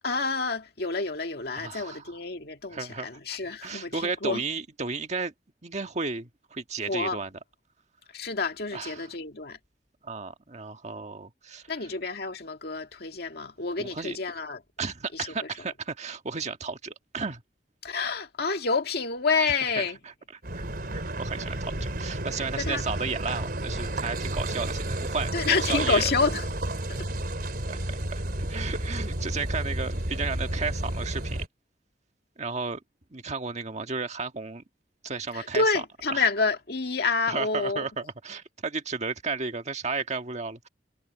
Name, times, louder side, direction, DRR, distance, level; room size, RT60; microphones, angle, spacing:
voice 1, 0.0-4.4 6.9-7.2 8.1-9.6 11.7-14.6 15.1-15.5 17.8-20.0 22.4-22.8 25.3-26.5 26.9-27.1 35.3-37.9, left 4 dB, 60° left, 2.1 m, -28 dB
voice 2, 1.6-2.0 2.7-5.3 5.6-7.3 8.7-9.1 10.0-11.7 13.8-14.2 14.8-17.4 19.8-19.9 20.5-20.6 20.9-26.0 27.7-31.4 32.4-32.8 33.1-34.6 35.0-35.6 36.1-36.2 37.3-40.7, right 4 dB, 40° right, 1.6 m, -33 dB
Car passing by / Idling / Accelerating revving vroom, 20.4-31.5, right 1 dB, 60° right, 4.2 m, -31 dB
head